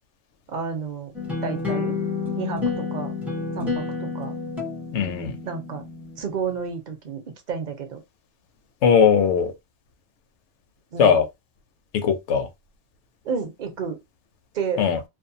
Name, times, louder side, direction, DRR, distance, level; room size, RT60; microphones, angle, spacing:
voice 1, 0.5-1.1 1.4-2.0 2.4-3.1 3.6-4.3 5.4-5.8 6.2-8.0 10.9-11.2 13.2-14.0 14.5-14.9, right 6 dB, 45° right, 0.7 m, -31 dB
sound 1, 1.1-6.2, left 4 dB, ahead, 0.5 m, -29 dB
voice 2, 4.9-5.4 8.8-9.5 11.0-11.3 11.9-12.5 14.8-15.0, left 7 dB, 75° left, 0.9 m, -19 dB
2.6 x 2.2 x 2.6 m
omnidirectional pair, 1.2 m